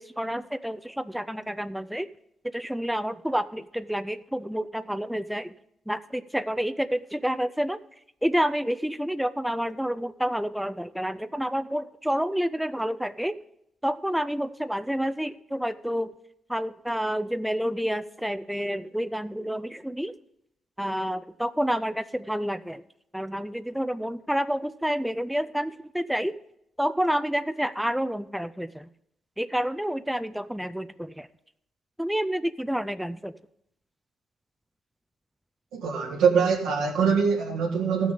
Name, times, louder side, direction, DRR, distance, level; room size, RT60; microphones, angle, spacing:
voice 1, 0.0-2.1 2.5-5.5 5.9-7.8 8.2-13.4 13.8-16.1 16.5-20.1 20.8-22.8 23.1-26.3 26.8-28.9 29.4-31.3 32.0-33.3, equal, ahead, 12 dB, 0.4 m, -29 dB
voice 2, 35.7-38.1, right 6 dB, 90° right, -2 dB, 1.5 m, -23 dB
14.0 x 6.3 x 5.3 m, 0.77 s
cardioid pair, 90°, 0 cm